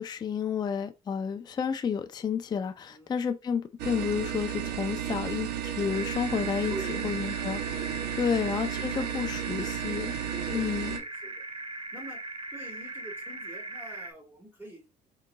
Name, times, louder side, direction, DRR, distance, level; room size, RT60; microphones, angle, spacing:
voice 1, 0.0-7.6 8.1-10.1 10.5-11.0, left 7 dB, 25° left, 0.4 m, -31 dB
sound 1, 3.8-11.0, right 9 dB, 80° right, 0.7 m, -33 dB
sound 2, 5.9-14.1, right 2 dB, 30° right, 0.5 m, -39 dB
voice 2, 6.7-7.1 8.0-8.4 8.9-9.1 10.3-11.5 11.9-12.2 12.5-14.8, right 2 dB, 10° right, 1.4 m, -45 dB
3.8 x 3.7 x 2.2 m
cardioid pair, 110°, 17 cm